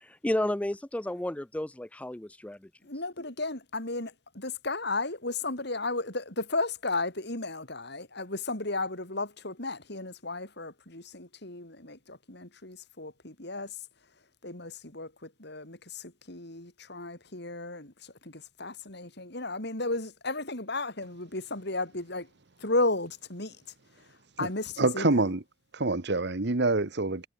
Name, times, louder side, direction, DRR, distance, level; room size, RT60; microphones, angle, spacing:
voice 1, 0.0-2.6, left 1 dB, 5° left, 0.4 m, -32 dB
voice 2, 2.8-13.9 14.4-22.3 22.6-23.6 24.0-25.3, left 2 dB, 60° left, 5.2 m, -34 dB
voice 3, 24.8-25.4 25.7-27.3, right 2 dB, 60° right, 1.3 m, -26 dB
head